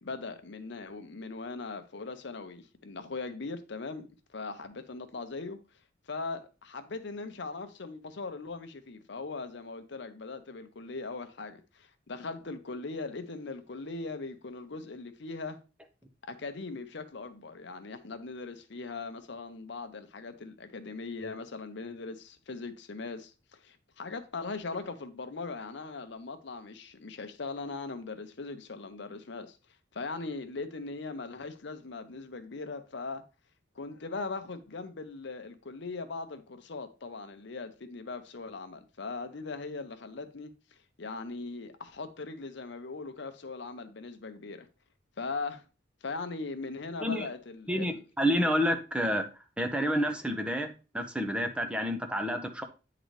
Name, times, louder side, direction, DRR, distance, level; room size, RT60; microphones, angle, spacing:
voice 1, 0.0-5.6 6.1-15.6 16.3-23.3 23.6-29.6 29.9-33.2 33.8-40.5 41.0-44.7 45.2-45.6 46.0-48.0, left 3 dB, 60° left, 0.7 m, -40 dB
voice 2, 47.7-49.3 49.6-52.6, equal, 5° right, 0.7 m, -29 dB
9.0 x 3.9 x 3.2 m
head